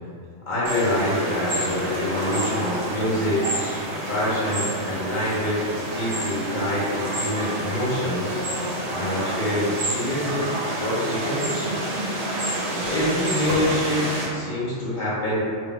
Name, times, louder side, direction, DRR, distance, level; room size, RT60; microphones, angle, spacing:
voice 1, 0.5-3.5 4.1-8.4 8.9-12.0 12.7-15.4, left 1 dB, 50° left, -8 dB, 0.6 m, -26 dB
sound 1, 0.7-14.3, right 1 dB, 65° right, 0.9 m, -28 dB
2.2 x 2.0 x 3.7 m, 2.3 s
omnidirectional pair, 1.2 m